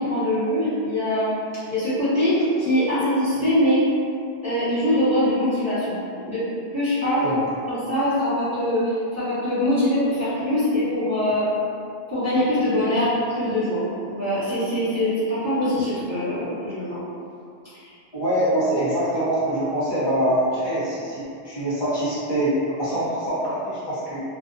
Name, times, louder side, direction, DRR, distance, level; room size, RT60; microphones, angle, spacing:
voice 1, 0.0-1.3 1.7-3.8 4.4-6.0 6.3-6.5 6.7-7.2 7.7-11.5 12.1-17.0 17.7-17.9, left 1 dB, 15° right, -15 dB, 0.8 m, -23 dB
voice 2, 18.1-24.2, right 1 dB, 25° left, -10 dB, 0.7 m, -24 dB
2.5 x 2.4 x 2.5 m, 2.5 s
omnidirectional pair, 1.2 m